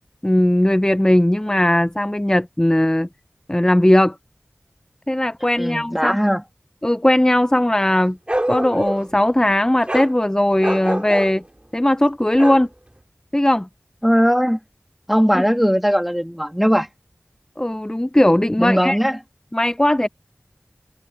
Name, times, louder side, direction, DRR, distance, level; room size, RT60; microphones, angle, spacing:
voice 1, 0.2-3.1 3.5-4.2 5.1-6.2 6.8-8.2 8.5-11.4 11.7-12.7 13.3-13.7 15.3-15.5 17.6-19.0 19.5-20.1, left 1 dB, 15° left, 0.6 m, -18 dB
voice 2, 5.6-6.4 14.0-14.6 15.1-16.9 18.6-19.2, equal, ahead, 2.9 m, -18 dB
Bark, 8.3-9.2 9.9-10.1 10.6-11.3 12.4-12.7, right 1 dB, 25° right, 2.5 m, -24 dB
wide cardioid pair, 45°, 5 cm